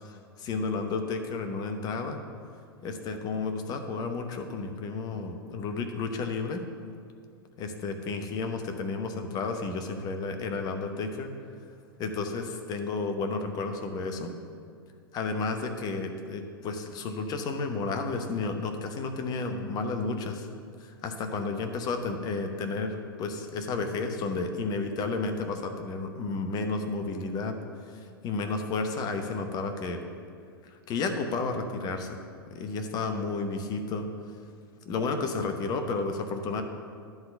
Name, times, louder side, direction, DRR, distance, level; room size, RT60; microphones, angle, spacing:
voice 1, 0.0-2.2 2.8-6.6 7.6-11.3 12.0-14.3 15.1-20.5 20.8-27.6 28.2-30.0 30.9-32.2 32.5-34.1 34.9-36.6, left 4 dB, 30° left, 6 dB, 0.9 m, -32 dB
10.5 x 3.9 x 6.6 m, 2.2 s
figure-of-eight pair, 100°, 13 cm